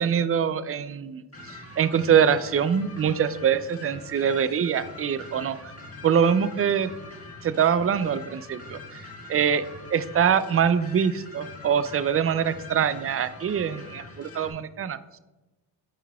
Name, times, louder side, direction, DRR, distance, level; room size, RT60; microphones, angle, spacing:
voice 1, 0.0-5.6 6.0-6.9 7.4-9.0 9.3-9.6 9.9-15.0, right 8 dB, 35° right, 14 dB, 0.4 m, -24 dB
sound 1, 1.3-14.5, left 2 dB, 30° left, 1.6 m, -43 dB
9.0 x 4.6 x 2.3 m, 1.0 s
supercardioid pair, 50°, 45 cm